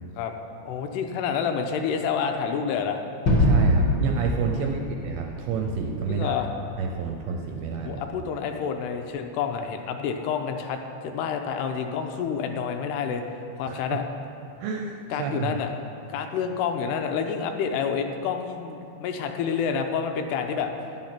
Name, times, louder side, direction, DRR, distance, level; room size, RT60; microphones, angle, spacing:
voice 1, 0.7-3.0 4.5-4.7 6.1-6.5 7.9-10.8 11.0-13.2 13.6-14.0 15.1-15.7 16.1-20.7, left 7 dB, 85° left, 5 dB, 2.7 m, -28 dB
Gunshot gunfire / Fireworks / Boom, 3.2-8.0, equal, 55° left, 1.3 m, -25 dB
voice 2, 3.4-6.4 6.8-8.0 13.7-14.0 14.6-15.6, right 5 dB, 75° right, 2 dB, 2.3 m, -29 dB
11.0 x 10.5 x 5.9 m, 2.8 s
omnidirectional pair, 5.0 m